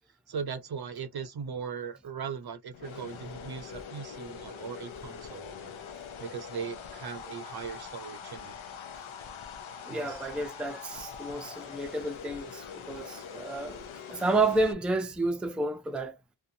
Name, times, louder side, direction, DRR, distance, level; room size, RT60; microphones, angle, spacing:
voice 1, 0.3-5.7 6.2-8.6 9.9-10.3, right 6 dB, 55° right, 0.6 m, -39 dB
sound 1, 2.7-14.7, left 7 dB, 85° left, 0.6 m, -43 dB
voice 2, 9.9-13.8 14.1-16.1, right 2 dB, ahead, 0.4 m, -30 dB
2.6 x 2.3 x 2.6 m
wide cardioid pair, 70°, 47 cm